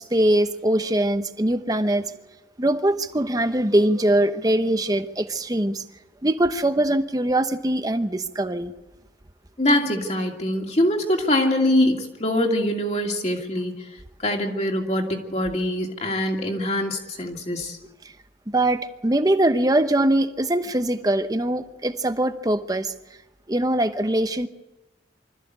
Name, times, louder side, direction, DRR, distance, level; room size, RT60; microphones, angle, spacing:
voice 1, 0.0-2.1 2.6-5.8 6.2-8.7 18.5-22.9 23.5-24.5, right 1 dB, 20° right, 9 dB, 0.9 m, -22 dB
voice 2, 9.6-13.8 14.2-17.8, left 1 dB, 35° left, 2 dB, 2.6 m, -23 dB
25.0 x 14.0 x 8.1 m, 1.0 s
head